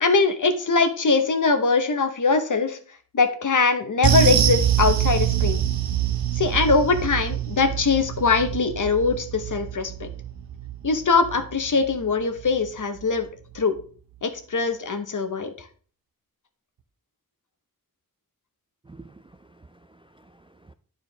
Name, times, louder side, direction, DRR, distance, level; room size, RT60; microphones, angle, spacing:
voice 1, 0.0-2.8 3.1-5.6 6.4-10.1 10.8-13.3 13.5-13.7 14.2-15.5, left 4 dB, 60° left, 1.0 m, -22 dB
sound 1, 4.0-12.7 13.0-13.2 13.6-13.7, right 10 dB, 75° right, 0.7 m, -25 dB
voice 2, 18.9-20.7, right 3 dB, 15° right, 0.3 m, -50 dB
9.9 x 4.5 x 3.4 m
wide cardioid pair, 95°, 36 cm